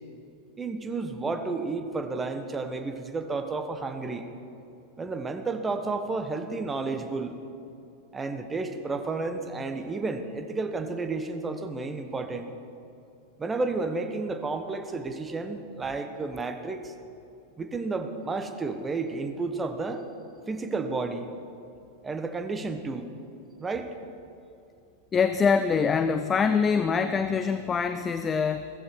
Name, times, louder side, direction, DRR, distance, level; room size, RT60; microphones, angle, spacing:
voice 1, 0.6-4.2 5.0-7.3 8.1-12.5 13.4-16.9 17.6-20.0 20.5-21.3 22.0-23.1 23.6-23.9, right 3 dB, 15° right, 7 dB, 1.1 m, -31 dB
voice 2, 25.1-28.7, left 5 dB, 20° left, 10 dB, 0.5 m, -24 dB
16.0 x 14.5 x 4.7 m, 2.7 s
figure-of-eight pair, 90°, 0 cm